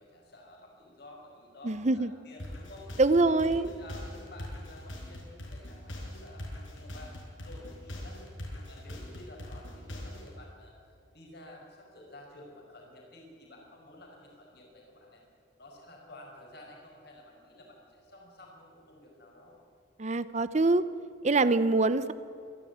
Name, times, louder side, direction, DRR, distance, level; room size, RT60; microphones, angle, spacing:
voice 1, 0.0-3.0 3.2-7.1 7.4-8.2 8.7-15.2 15.6-19.6, left 1 dB, 55° left, -1 dB, 5.4 m, -51 dB
voice 2, 1.6-2.1 3.0-3.7 20.0-20.8 21.2-22.1, right 3 dB, 35° right, 14 dB, 0.7 m, -24 dB
sound 1, 2.4-10.3, left 1 dB, 75° left, 6.0 m, -42 dB
27.0 x 11.5 x 9.5 m, 2.6 s
head